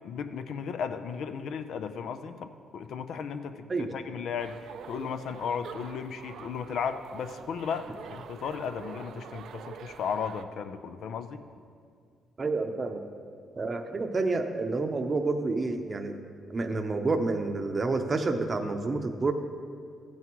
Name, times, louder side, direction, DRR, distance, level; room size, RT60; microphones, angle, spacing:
voice 1, 0.0-11.4, left 6 dB, 70° left, 9 dB, 0.5 m, -35 dB
sound 1, 4.4-10.4, right 7 dB, 70° right, 0.4 m, -45 dB
voice 2, 12.4-13.0 13.6-16.1 16.5-19.3, right 3 dB, 35° right, 5 dB, 0.7 m, -29 dB
14.5 x 9.4 x 3.1 m, 2.2 s
cardioid pair, 90°, 0 cm